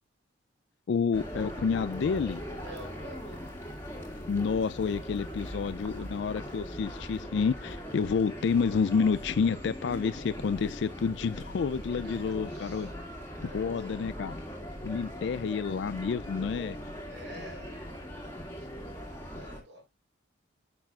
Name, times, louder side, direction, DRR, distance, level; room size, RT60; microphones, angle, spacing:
voice 1, 0.9-2.4 4.3-12.9 13.5-14.4 14.8-16.8, left 5 dB, 60° left, 0.3 m, -29 dB
sound 1, 1.1-19.6, equal, 15° left, 2.0 m, -40 dB
voice 2, 2.6-3.5 12.0-12.9 13.3-14.3 17.0-19.9, equal, 70° right, 5.4 m, -51 dB
10.5 x 6.2 x 2.4 m
head